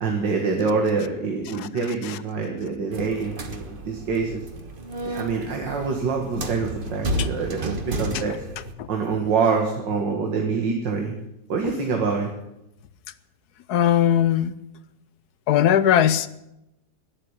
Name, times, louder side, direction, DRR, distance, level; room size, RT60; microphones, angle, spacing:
voice 1, 0.0-4.4 5.0-8.4 8.9-11.1 11.5-12.3, right 4 dB, 75° right, 2.4 m, -25 dB
sound 1, 2.9-8.7, right 1 dB, 30° right, 1.4 m, -32 dB
voice 2, 13.7-14.5 15.5-16.3, left 10 dB, 65° left, 1.2 m, -19 dB
12.5 x 11.0 x 9.8 m
omnidirectional pair, 2.0 m